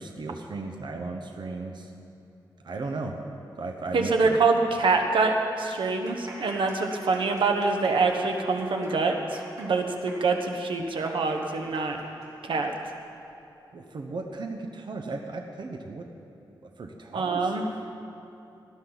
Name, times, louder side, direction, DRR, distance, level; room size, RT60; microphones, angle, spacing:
voice 1, 0.0-1.9 2.6-3.2 3.6-4.4 13.7-16.1 16.8-17.6, right 3 dB, 65° right, 3 dB, 1.0 m, -36 dB
voice 2, 3.9-12.0 12.4-12.7 17.1-17.6, right 4 dB, 85° right, 4 dB, 1.1 m, -25 dB
sound 1, 5.8-13.0 13.3-13.4 14.1-14.4, right 1 dB, 45° right, 3.8 m, -47 dB
18.5 x 12.5 x 4.0 m, 2.8 s
wide cardioid pair, 120°, 8 cm